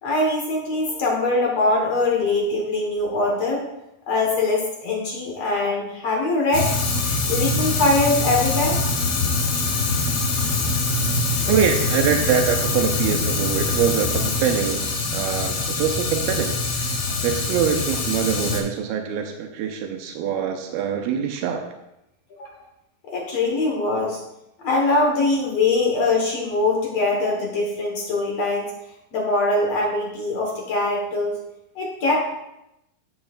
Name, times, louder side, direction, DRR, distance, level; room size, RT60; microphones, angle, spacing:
voice 1, 0.0-3.7 4.1-6.7 7.3-8.8 22.4-22.5 23.1-24.2 24.6-28.7 29.1-31.3 31.8-32.3, left 2 dB, 60° left, -1 dB, 1.8 m, -22 dB
Fire, 6.5-18.6, left 3 dB, 80° left, 3.7 m, -24 dB
voice 2, 11.5-21.7, right 8 dB, 85° right, 4 dB, 2.5 m, -24 dB
12.5 x 7.8 x 2.4 m, 0.87 s
omnidirectional pair, 4.4 m